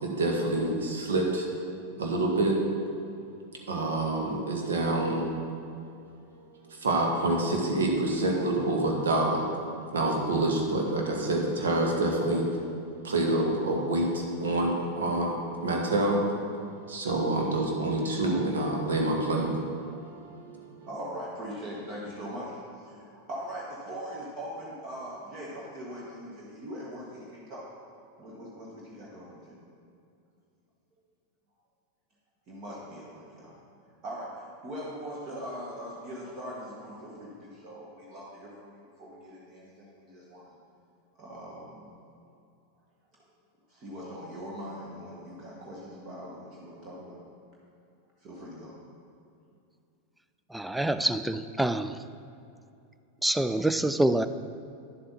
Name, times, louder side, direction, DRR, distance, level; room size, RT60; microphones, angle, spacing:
voice 1, 0.0-1.5 2.0-2.6 3.7-5.3 6.7-9.5 9.9-12.5 13.0-15.3 15.6-16.2 16.9-20.7, right 2 dB, 65° right, 0 dB, 1.5 m, -27 dB
voice 2, 20.8-27.6 28.2-29.6 32.5-33.6 34.0-40.6 41.2-41.9 43.7-47.2 48.2-48.7, equal, 35° right, -5 dB, 1.5 m, -41 dB
voice 3, 50.5-51.9 53.2-54.3, right 1 dB, 5° right, 11 dB, 0.3 m, -26 dB
10.5 x 7.5 x 4.1 m, 2.6 s
figure-of-eight pair, 90°, 0 cm